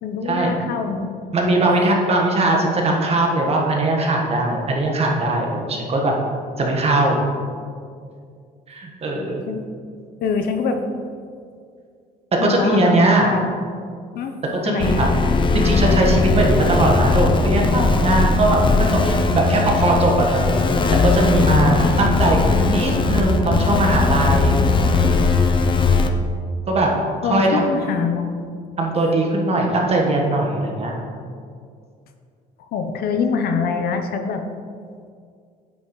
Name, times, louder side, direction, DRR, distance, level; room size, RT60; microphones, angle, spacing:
voice 1, 0.0-1.3 9.5-9.6 10.2-10.9 12.4-13.5 14.1-14.4 14.6-15.0 27.2-28.5 32.6-34.4, left 5 dB, 65° left, 6 dB, 0.7 m, -24 dB
voice 2, 1.3-6.1 6.6-7.2 8.7-9.4 12.4-13.3 14.5-15.1 15.5-20.6 20.9-24.6 26.7-26.9 27.2-27.7 28.8-31.0, right 2 dB, 35° right, 0 dB, 1.3 m, -20 dB
sound 1, 14.8-26.1, left 4 dB, 30° left, 0.5 m, -19 dB
9.2 x 5.5 x 3.1 m, 2.2 s
cardioid pair, 110°, 17 cm